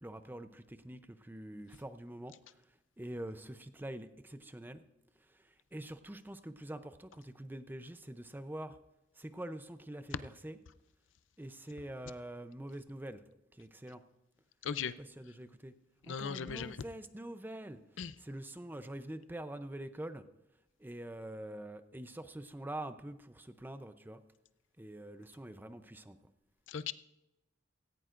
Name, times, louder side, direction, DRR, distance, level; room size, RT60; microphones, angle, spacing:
voice 1, 0.0-2.3 3.0-4.8 5.7-8.8 9.2-10.6 11.4-13.2 13.6-14.0 15.0-15.7 16.1-17.8 18.2-20.2 20.8-24.2 24.8-26.2, right 1 dB, 10° right, 10 dB, 0.6 m, -45 dB
voice 2, 14.6-14.9 16.1-16.8 18.0-18.1 26.7-26.9, left 7 dB, 75° left, 14 dB, 0.5 m, -37 dB
17.0 x 15.5 x 2.5 m, 0.91 s
head